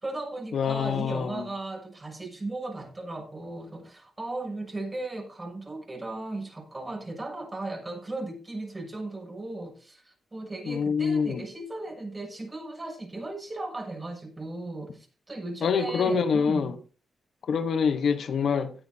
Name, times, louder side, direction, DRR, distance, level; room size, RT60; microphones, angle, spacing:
voice 1, 0.0-16.7, right 2 dB, 30° right, 7.1 m, -36 dB
voice 2, 0.5-1.5 10.7-11.4 15.6-16.8 17.5-18.7, left 6 dB, 70° left, 1.2 m, -25 dB
17.0 x 10.5 x 2.8 m
supercardioid pair, 50°, 0 cm